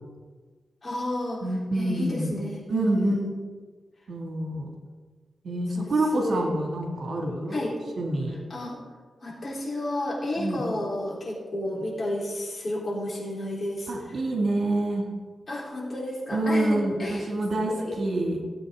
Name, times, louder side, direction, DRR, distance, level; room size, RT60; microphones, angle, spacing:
voice 1, 0.8-1.5 1.7-3.3 5.8-5.9 6.1-6.5 7.5-7.7 8.5-8.8 9.2-14.2 15.5-17.3 17.7-18.0, left 1 dB, 45° left, -4 dB, 3.7 m, -31 dB
voice 2, 1.4-2.4 2.7-3.2 4.1-4.7 5.4-7.6 8.0-8.4 10.4-10.6 13.9-15.0 16.3-18.4, right 1 dB, 65° right, 1 dB, 2.2 m, -27 dB
16.5 x 8.2 x 3.8 m, 1.4 s
cardioid pair, 80°, 0 cm